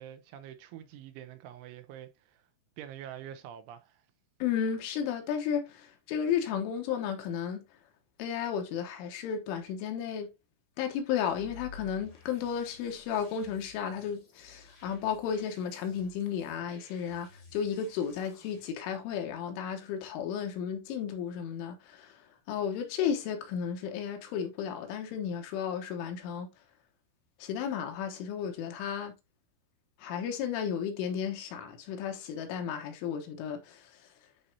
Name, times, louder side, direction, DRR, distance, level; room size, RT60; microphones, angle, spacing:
voice 1, 0.0-2.5 2.8-4.0, right 10 dB, 80° right, 2.9 m, -46 dB
voice 2, 4.4-7.6 8.2-10.3 10.8-26.5 27.4-29.2 30.0-33.9, left 8 dB, 75° left, 3.5 m, -33 dB
sound 1, 11.2-18.6, left 3 dB, 45° left, 1.4 m, -54 dB
11.0 x 4.2 x 2.7 m
omnidirectional pair, 5.8 m